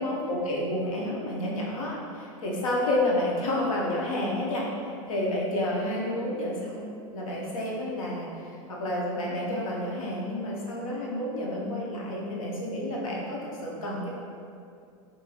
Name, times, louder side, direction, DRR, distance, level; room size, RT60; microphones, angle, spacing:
voice 1, 0.0-4.7 5.0-14.1, left 1 dB, 90° left, -3 dB, 0.7 m, -30 dB
2.8 x 2.6 x 2.3 m, 2.4 s
supercardioid pair, 130°, 17 cm